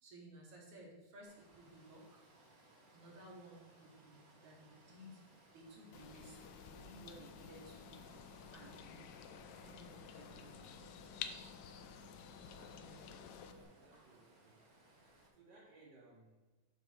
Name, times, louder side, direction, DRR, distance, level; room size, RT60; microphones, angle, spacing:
voice 1, 0.0-2.2 2.9-5.2 5.5-8.1 8.5-9.1 9.6-10.7 12.5-13.0 13.9-14.0, right 1 dB, 55° right, -1 dB, 1.9 m, -57 dB
Water, 1.2-15.3, right 2 dB, 35° right, 1.6 m, -66 dB
sound 1, 5.9-13.5, left 8 dB, 80° left, 1.7 m, -52 dB
sound 2, 6.2-13.6, left 2 dB, 65° left, 3.3 m, -61 dB
voice 2, 12.5-13.2 13.5-14.7 15.3-16.5, right 2 dB, 80° right, -3 dB, 0.9 m, -64 dB
8.8 x 3.5 x 6.3 m, 1.2 s
omnidirectional pair, 3.7 m